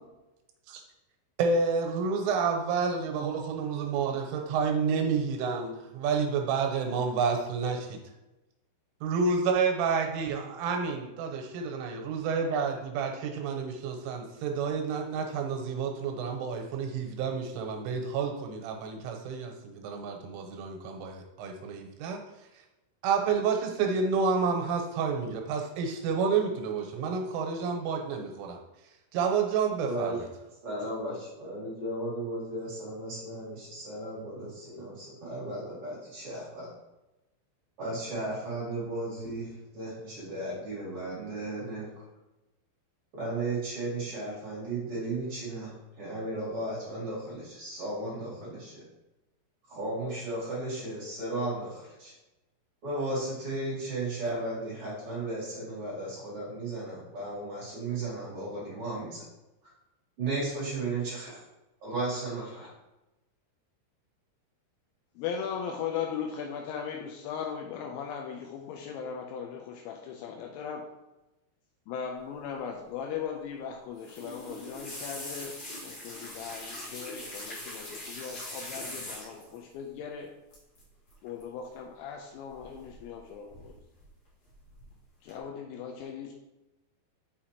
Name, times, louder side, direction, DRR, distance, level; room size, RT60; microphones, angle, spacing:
voice 1, 1.4-8.0 9.0-22.2 23.0-28.6 29.1-30.2, right 5 dB, 90° right, 4 dB, 3.3 m, -29 dB
voice 2, 29.8-30.3 30.6-36.7 37.8-42.1 43.1-48.8 49.7-52.1 52.8-59.2 60.2-61.4 61.8-62.7, right 2 dB, 45° right, -7 dB, 2.0 m, -35 dB
voice 3, 65.2-71.0 71.9-80.3 81.2-83.8 85.2-86.3, left 7 dB, 85° left, 2 dB, 2.7 m, -38 dB
sound 1, 74.0-79.5 80.5-80.8 81.1-81.4 82.6-83.2 83.5-84.1 84.5-84.9 85.3-85.4, left 1 dB, 60° left, 1.9 m, -42 dB
6.5 x 5.7 x 2.9 m, 1.0 s
omnidirectional pair, 5.6 m